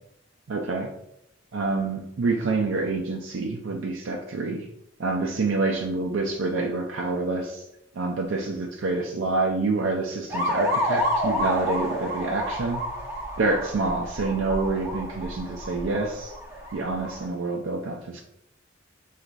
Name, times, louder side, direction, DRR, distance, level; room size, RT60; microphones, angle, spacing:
voice 1, 0.5-0.9 1.5-4.7 5.0-7.6 7.9-12.8 13.4-16.3 16.7-18.2, right 3 dB, 70° right, 0 dB, 0.5 m, -27 dB
sound 1, 10.3-17.3, equal, 15° right, 1.0 m, -29 dB
4.5 x 3.2 x 2.5 m, 0.80 s
head